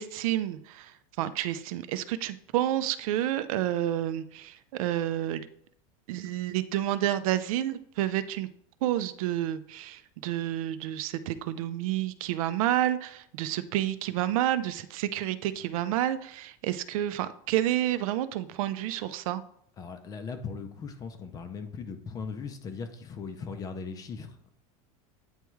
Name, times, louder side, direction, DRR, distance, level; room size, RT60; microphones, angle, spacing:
voice 1, 0.0-5.4 6.1-8.5 8.8-19.4, right 12 dB, 70° right, 13 dB, 0.5 m, -29 dB
voice 2, 19.8-24.5, left 5 dB, 20° left, 8 dB, 0.5 m, -39 dB
9.0 x 3.5 x 3.1 m, 0.66 s
supercardioid pair, 165°, 19 cm